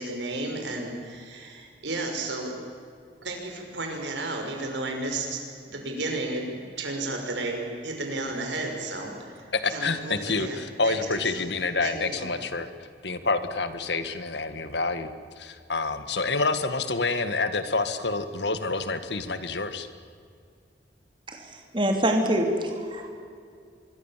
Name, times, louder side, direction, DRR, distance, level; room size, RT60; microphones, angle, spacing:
voice 1, 0.0-2.5 3.2-5.4 5.7-9.3 9.7-10.6 10.8-11.5 11.8-12.3, right 2 dB, 90° right, 2 dB, 6.1 m, -33 dB
voice 2, 9.5-12.7 13.0-19.9, left 3 dB, 75° left, 10 dB, 1.8 m, -28 dB
voice 3, 21.7-23.2, right 1 dB, 25° right, 3 dB, 3.1 m, -25 dB
25.5 x 23.5 x 7.5 m, 2.3 s
head